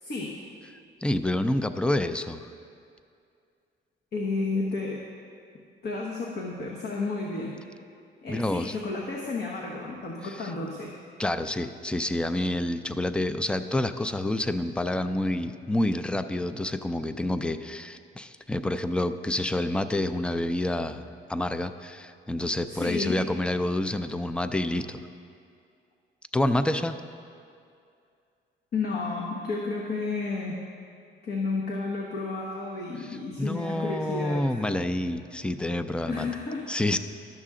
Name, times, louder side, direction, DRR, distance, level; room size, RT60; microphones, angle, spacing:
voice 1, 0.0-0.3 4.1-5.0 5.8-7.6 8.2-10.9 22.7-23.3 28.7-30.6 31.2-34.4 36.1-36.6, left 3 dB, 55° left, -2 dB, 1.1 m, -31 dB
voice 2, 1.0-2.5 8.3-8.8 10.2-10.5 11.2-25.0 26.3-27.0 33.0-36.3 36.7-37.0, left 1 dB, 5° left, 11 dB, 0.3 m, -28 dB
12.0 x 6.6 x 3.7 m, 2.4 s
cardioid pair, 90°, 20 cm